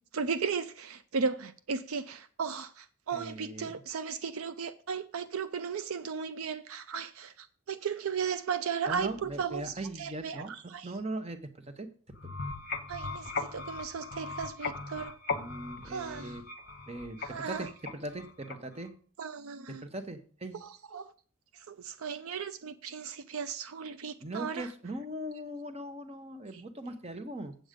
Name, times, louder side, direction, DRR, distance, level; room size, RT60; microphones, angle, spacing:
voice 1, 0.0-10.4 10.7-10.9 12.9-15.1 15.9-16.4 17.3-17.7 19.2-19.8 20.6-21.1 21.7-24.7, right 6 dB, 70° right, 0.5 m, -36 dB
voice 2, 3.1-3.7 8.9-11.9 15.3-16.4 16.9-18.9 19.8-20.6 24.2-27.5, right 1 dB, 30° right, 0.9 m, -40 dB
sound 1, 12.1-18.9, left 4 dB, 45° left, 0.8 m, -39 dB
7.9 x 7.8 x 5.1 m
head